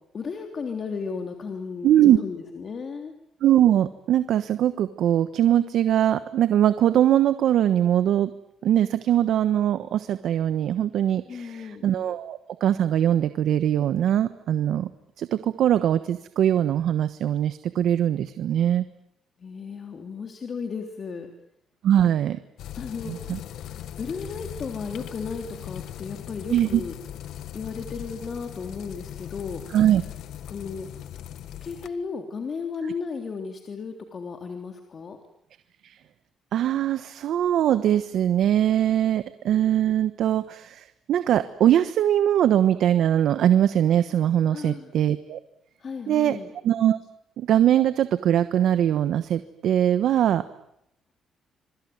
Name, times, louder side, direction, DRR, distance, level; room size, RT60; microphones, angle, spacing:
voice 1, 0.1-3.1 11.3-11.8 19.4-21.3 22.8-23.3 24.0-27.0 27.5-29.6 30.5-30.9 31.6-35.2 44.5-44.9 45.8-46.5, left 5 dB, 45° left, 4 dB, 3.3 m, -34 dB
voice 2, 1.8-2.2 3.4-8.3 8.6-14.9 15.2-18.8 21.8-22.4 23.1-23.4 26.5-26.8 29.7-30.0 35.8-36.0 36.5-45.4 46.1-46.4 46.6-47.0 47.4-50.4, right 11 dB, 75° right, 12 dB, 1.2 m, -21 dB
sound 1, 22.6-31.9, left 11 dB, 80° left, 1.5 m, -39 dB
26.5 x 23.5 x 9.5 m, 0.78 s
cardioid pair, 90°, 0 cm